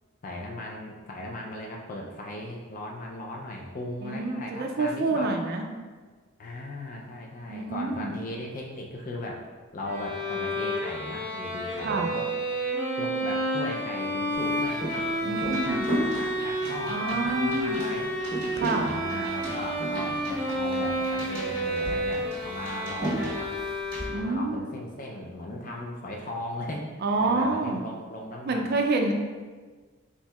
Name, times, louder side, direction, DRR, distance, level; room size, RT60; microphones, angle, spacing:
voice 1, 0.2-5.3 6.4-9.4 9.7-12.3 13.0-14.9 15.2-18.1 18.8-23.5 24.1-28.8, left 1 dB, 35° left, -1 dB, 0.4 m, -37 dB
voice 2, 4.0-5.6 7.5-8.1 11.8-12.1 15.2-15.9 16.9-17.8 18.5-18.9 24.1-24.7 27.0-27.8 28.5-29.1, right 2 dB, 45° right, 3 dB, 0.4 m, -27 dB
Bowed string instrument, 9.9-24.5, equal, 10° left, 0.7 m, -30 dB
sound 1, 14.3-24.1, right 1 dB, 20° right, 1.4 m, -36 dB
4.4 x 4.0 x 2.3 m, 1.4 s
head